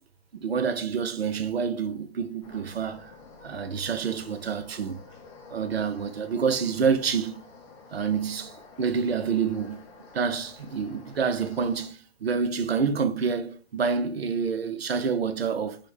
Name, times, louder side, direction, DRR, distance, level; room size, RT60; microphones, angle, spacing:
voice 1, 0.4-3.1 3.4-5.0 5.5-7.4 7.9-9.8 10.1-15.8, right 6 dB, 70° right, 0.6 m, -27 dB
sound 1, 2.4-11.9, left 4 dB, 30° left, 0.6 m, -50 dB
3.5 x 2.6 x 3.8 m
figure-of-eight pair, 120°, 32 cm